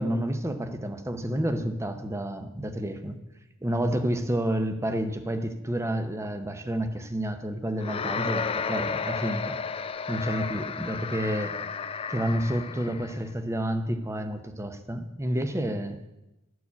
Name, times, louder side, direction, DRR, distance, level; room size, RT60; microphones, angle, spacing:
voice 1, 0.0-3.2 3.6-9.6 10.1-11.6 12.1-16.0, right 1 dB, 15° right, 8 dB, 0.7 m, -29 dB
sound 1, 7.8-13.2, left 5 dB, 25° left, 0.4 m, -32 dB
11.5 x 4.8 x 8.3 m, 0.96 s
head